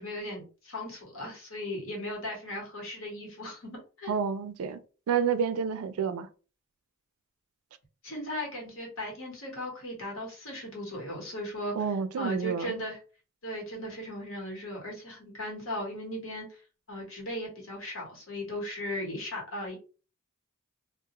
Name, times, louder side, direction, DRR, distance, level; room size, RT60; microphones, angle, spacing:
voice 1, 0.0-4.1 8.0-11.8 12.2-13.0 13.4-16.5 16.9-19.8, left 1 dB, 65° left, 1.1 m, -37 dB
voice 2, 4.1-4.8 5.1-6.3 11.8-12.7, right 6 dB, 80° right, 0.3 m, -29 dB
2.3 x 2.1 x 2.9 m
head